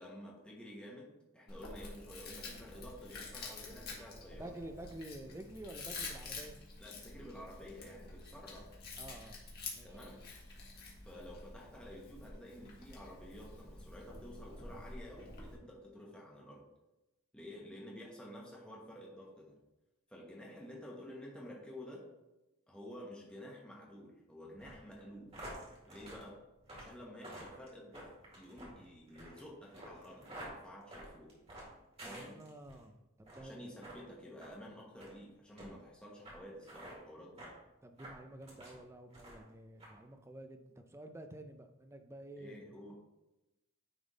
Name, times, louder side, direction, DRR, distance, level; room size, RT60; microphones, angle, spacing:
voice 1, 0.0-4.5 6.8-8.7 9.8-10.2 11.0-16.7 17.3-19.6 20.1-22.1 22.7-25.3 25.9-26.4 26.7-31.3 32.0-32.4 33.4-37.5 42.4-43.0, equal, 5° left, -3 dB, 1.1 m, -51 dB
Chewing mastication, 1.5-15.6, left 3 dB, 45° left, 1.5 m, -48 dB
voice 2, 4.4-6.6 9.0-9.4 9.7-10.1 32.0-33.7 37.8-42.6, right 1 dB, 10° right, 6 dB, 0.4 m, -50 dB
sound 1, 24.6-32.8 33.2-33.5 33.8-34.0 34.4-34.5 35.0-35.1 35.6-35.7 36.2-36.4 36.6-36.9 37.4-37.5 38.0-38.8 39.1-39.5 39.8-39.9, right 1 dB, 30° right, 2.0 m, -50 dB
9.8 x 3.6 x 4.0 m, 0.98 s
head